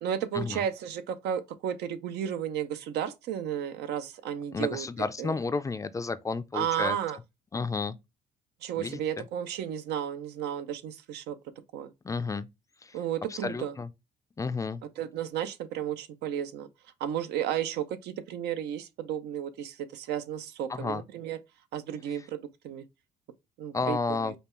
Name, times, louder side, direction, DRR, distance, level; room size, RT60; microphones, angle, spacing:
voice 1, 0.0-4.9 5.2-5.4 6.5-7.2 8.6-11.4 11.7-11.9 12.9-13.7 15.0-16.7 17.0-21.4 21.7-22.9 23.6-24.3, right 9 dB, 80° right, 0.7 m, -33 dB
voice 2, 4.5-7.0 7.5-8.0 8.8-9.0 12.0-12.5 12.8-13.0 13.4-13.9 14.4-14.8 20.7-21.0 23.7-24.3, left 4 dB, 20° left, 0.3 m, -31 dB
5.2 x 2.3 x 3.0 m
cardioid pair, 110°, 17 cm